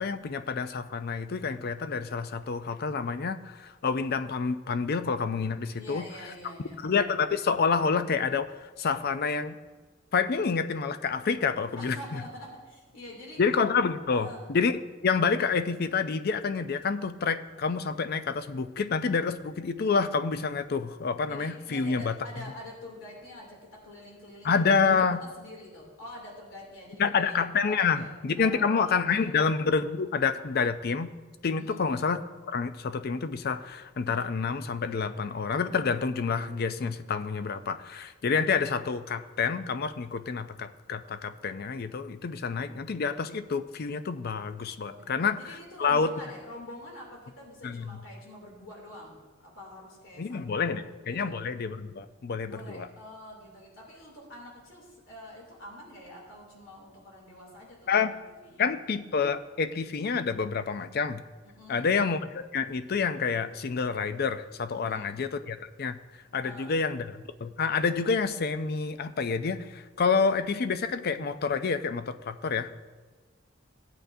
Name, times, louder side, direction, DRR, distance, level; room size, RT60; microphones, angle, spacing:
voice 1, 0.0-6.1 6.8-9.5 10.1-12.2 13.4-22.5 24.4-25.2 27.0-31.1 31.4-32.2 32.5-46.1 47.6-48.0 50.2-52.9 57.9-58.2 58.6-61.2 61.7-66.0 66.3-72.8, left 5 dB, 50° left, 11 dB, 0.5 m, -28 dB
voice 2, 5.7-6.8 11.8-13.4 14.1-14.4 21.2-24.9 25.2-29.3 31.5-31.8 44.8-45.1 45.4-51.4 52.4-57.9 58.4-58.7 61.4-61.9 64.7-65.2 66.3-66.7, left 1 dB, 80° left, -2 dB, 2.8 m, -46 dB
16.0 x 8.9 x 2.7 m, 1.3 s
head